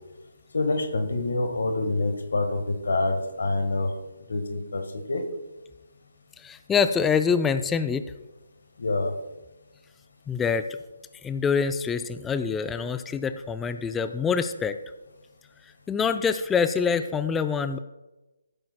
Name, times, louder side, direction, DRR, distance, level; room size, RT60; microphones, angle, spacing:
voice 1, 0.5-3.9 4.3-5.2 8.8-9.1, left 2 dB, 70° left, 6 dB, 1.4 m, -26 dB
voice 2, 6.4-8.0 10.3-10.6 11.2-14.8 15.9-17.8, left 6 dB, 10° left, 10 dB, 0.4 m, -25 dB
15.5 x 8.8 x 2.2 m, 1.1 s
figure-of-eight pair, 150°, 0 cm